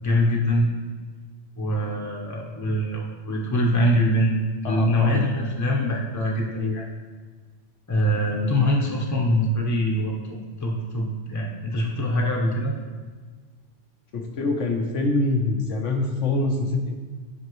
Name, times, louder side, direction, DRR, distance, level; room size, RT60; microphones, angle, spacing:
voice 1, 0.0-0.7 1.6-4.4 4.6-6.8 7.9-12.8, equal, 15° left, -2 dB, 0.8 m, -23 dB
voice 2, 4.6-5.2 6.5-6.7 14.1-16.9, left 2 dB, 85° left, 1 dB, 1.3 m, -25 dB
9.6 x 5.2 x 3.1 m, 1.4 s
omnidirectional pair, 1.2 m